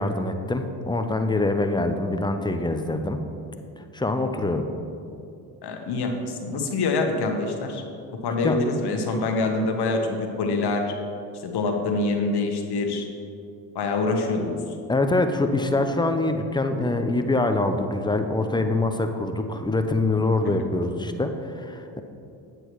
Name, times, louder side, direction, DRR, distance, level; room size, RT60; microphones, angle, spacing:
voice 1, 0.0-3.2 3.9-4.6 8.4-8.6 14.9-22.0, left 2 dB, 10° left, 6 dB, 0.6 m, -24 dB
voice 2, 5.6-7.8 8.2-10.9 11.4-13.1 13.7-14.6 20.4-20.5, left 3 dB, 60° left, 3 dB, 1.1 m, -25 dB
8.1 x 7.8 x 3.1 m, 2.6 s
supercardioid pair, 70°, 44 cm